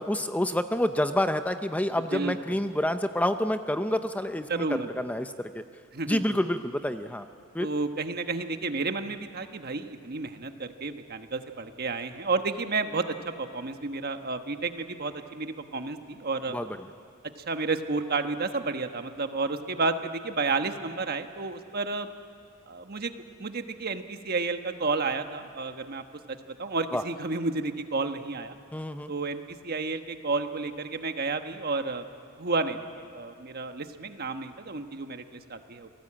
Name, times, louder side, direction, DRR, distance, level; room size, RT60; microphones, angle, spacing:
voice 1, 0.0-4.7 5.0-5.6 6.1-7.3 7.5-7.7 16.5-16.7 26.9-27.0 28.7-29.1, left 1 dB, 5° left, 8 dB, 0.6 m, -28 dB
voice 2, 2.1-2.6 4.5-5.0 5.9-6.4 7.6-16.6 17.5-22.1 22.7-23.1 23.4-28.6 29.1-32.1 32.4-35.2 35.5-35.9, right 3 dB, 45° right, 7 dB, 1.2 m, -31 dB
28.0 x 19.0 x 8.7 m, 2.4 s
head